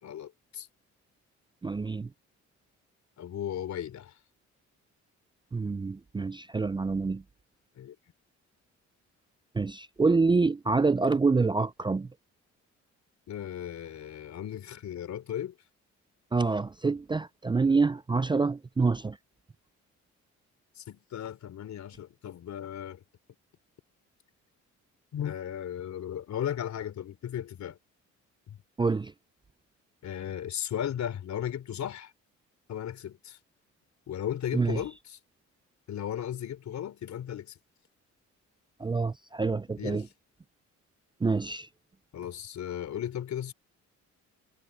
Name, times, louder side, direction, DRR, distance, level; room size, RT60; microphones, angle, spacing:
voice 1, 0.0-0.7 3.2-4.1 7.8-8.0 13.3-15.5 20.8-23.0 25.1-27.8 28.5-28.6 30.0-32.1 32.7-33.4 34.1-35.2 35.9-37.6 39.7-40.1 42.1-43.5, left 10 dB, 65° left, 3.6 m, -36 dB
voice 2, 1.6-2.1 5.5-7.2 9.5-12.1 16.3-19.2 28.8-29.1 34.5-34.8 38.8-40.0 41.2-41.7, right 4 dB, 15° right, 0.4 m, -26 dB
cardioid pair, 90°, 30 cm